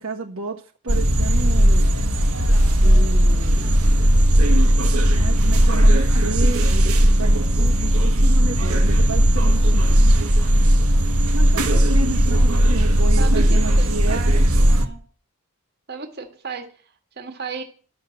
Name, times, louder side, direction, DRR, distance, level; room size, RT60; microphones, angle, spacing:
voice 1, 0.0-1.9 2.8-3.7 5.1-10.2 11.3-14.5, right 2 dB, 65° right, -2 dB, 1.4 m, -32 dB
sound 1, 0.9-14.9, equal, 80° right, 1.5 m, -16 dB
voice 2, 13.2-14.4 14.7-15.0 15.9-17.6, right 5 dB, 45° right, 5 dB, 1.8 m, -35 dB
11.0 x 7.0 x 7.6 m, 0.41 s
head